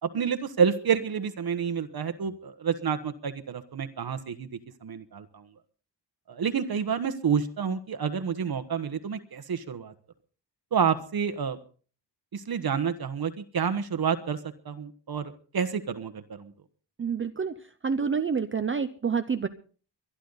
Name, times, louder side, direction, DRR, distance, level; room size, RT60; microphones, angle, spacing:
voice 1, 0.0-4.5 4.8-5.4 6.3-9.9 10.7-11.6 12.3-14.4 14.6-16.5, right 7 dB, 55° right, 8 dB, 1.3 m, -29 dB
voice 2, 17.0-17.5 17.8-19.5, right 6 dB, 30° right, 9 dB, 0.6 m, -28 dB
23.5 x 11.5 x 4.0 m, 0.42 s
wide cardioid pair, 170°, 45 cm